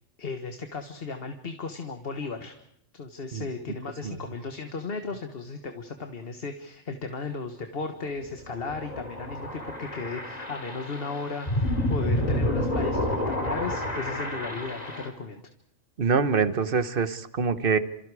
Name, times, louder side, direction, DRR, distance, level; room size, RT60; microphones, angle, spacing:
voice 1, 0.2-2.5 2.9-15.4, left 4 dB, 50° left, 6 dB, 1.6 m, -35 dB
sound 1, 8.2-15.1, left 1 dB, 35° left, 3.1 m, -29 dB
voice 2, 16.0-17.8, right 5 dB, 50° right, 12 dB, 1.2 m, -25 dB
29.0 x 27.5 x 4.9 m, 0.73 s
omnidirectional pair, 1.3 m